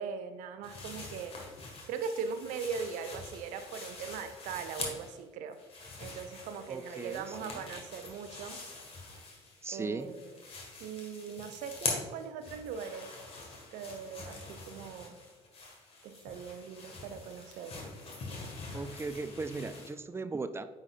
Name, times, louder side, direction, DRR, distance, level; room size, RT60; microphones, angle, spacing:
voice 1, 0.0-1.3 1.9-5.6 6.0-8.6 9.7-10.3 10.8-13.1 13.7-15.2 16.0-17.8, right 6 dB, 60° right, 9 dB, 0.6 m, -40 dB
sound 1, 0.6-5.2 5.5-9.7 10.0-19.9, left 3 dB, 40° left, 1.7 m, -44 dB
voice 2, 6.7-7.6 9.6-10.1 18.7-20.6, right 3 dB, 15° right, 11 dB, 0.4 m, -38 dB
9.5 x 4.2 x 2.5 m, 1.3 s
figure-of-eight pair, 50°, 15 cm